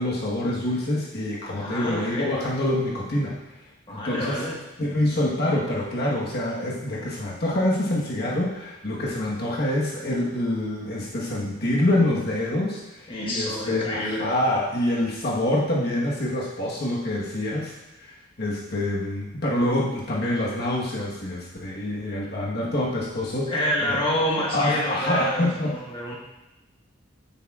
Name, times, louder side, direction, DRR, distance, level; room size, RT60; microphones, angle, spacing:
voice 1, 0.0-3.3 3.9-4.4 4.8-17.7 18.0-18.1 18.4-23.5 23.8-23.9 24.5-25.7, left 1 dB, 55° left, -4 dB, 1.3 m, -26 dB
voice 2, 1.5-2.3 3.9-4.6 13.1-14.3 23.5-26.2, equal, 25° left, -3 dB, 1.4 m, -28 dB
10.0 x 8.2 x 2.4 m, 0.99 s
head